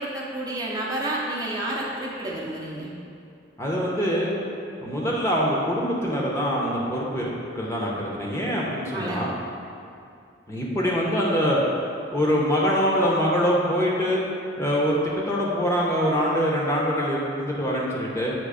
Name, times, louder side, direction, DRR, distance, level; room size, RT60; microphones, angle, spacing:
voice 1, 0.0-2.9 8.9-9.2, right 1 dB, 20° right, -5 dB, 0.7 m, -30 dB
voice 2, 3.6-4.3 4.8-9.3 10.5-11.6 12.1-14.2 14.6-18.3, equal, 15° left, -4 dB, 0.7 m, -24 dB
7.7 x 3.0 x 4.9 m, 2.5 s
head